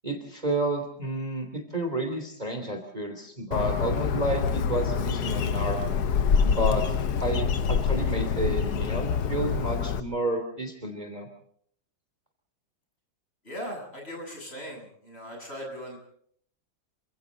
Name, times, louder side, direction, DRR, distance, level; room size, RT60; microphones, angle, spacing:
voice 1, 0.0-5.8 6.4-6.8 7.2-11.3, right 1 dB, 20° right, 5 dB, 3.2 m, -30 dB
Bird, 3.5-10.0, left 6 dB, 65° left, 1.5 m, -26 dB
voice 2, 13.4-16.0, equal, 30° left, 0 dB, 8.1 m, -39 dB
29.0 x 25.5 x 4.0 m, 0.64 s
omnidirectional pair, 2.0 m